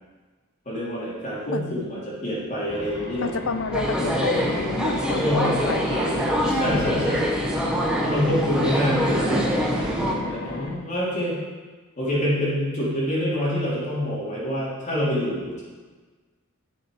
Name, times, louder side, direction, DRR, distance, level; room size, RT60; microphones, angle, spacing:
voice 1, 0.6-3.4 4.0-4.3 5.1-6.2 6.5-7.3 8.0-11.4 12.0-15.6, equal, 35° left, -7 dB, 3.4 m, -26 dB
voice 2, 1.5-1.9 3.2-6.1 6.5-7.2 10.1-10.8, left 4 dB, 80° left, 10 dB, 0.6 m, -31 dB
sound 1, 2.7-10.7, left 2 dB, 60° left, 1.6 m, -36 dB
sound 2, 3.7-10.1, equal, 5° right, 1.2 m, -25 dB
11.0 x 7.1 x 4.9 m, 1.4 s
head